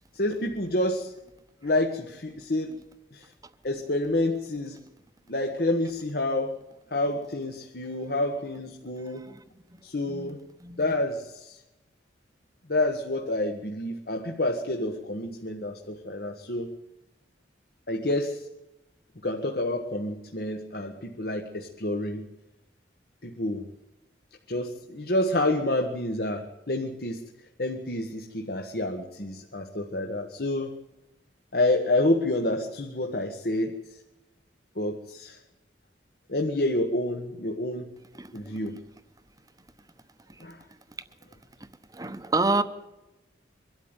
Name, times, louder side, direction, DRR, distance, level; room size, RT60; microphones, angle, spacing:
voice 1, 0.1-1.1 1.6-2.8 3.1-3.2 3.6-4.8 5.3-6.6 6.9-9.2 9.8-10.4 10.8-11.6 12.7-16.7 17.9-18.4 19.2-22.3 23.2-23.6 24.5-27.2 27.6-30.7 31.5-33.7 34.8-35.4 36.3-37.9 38.3-38.8 40.4-40.6, left 1 dB, 60° left, 3 dB, 1.4 m, -28 dB
voice 2, 10.0-11.0 38.1-38.7 41.9-42.6, right 3 dB, 20° right, 11 dB, 1.0 m, -29 dB
23.5 x 12.5 x 9.0 m, 1.0 s
head